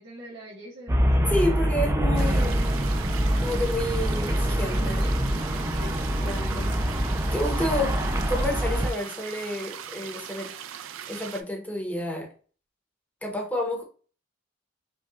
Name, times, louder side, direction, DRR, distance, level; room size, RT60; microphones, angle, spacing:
voice 1, 0.0-1.1 4.9-6.4 7.5-8.1, equal, 60° right, -6 dB, 0.9 m, -45 dB
Traffic noise roadway noise, 0.9-8.9, equal, 15° right, 0.4 m, -25 dB
voice 2, 1.3-2.6 3.4-5.0 6.2-6.7 7.3-7.9 8.3-10.5 11.1-12.3 13.2-13.8, left 1 dB, 10° left, 0 dB, 0.8 m, -29 dB
sound 1, 2.2-11.4, right 9 dB, 85° right, 0.4 m, -40 dB
5.2 x 2.3 x 2.4 m, 0.40 s
head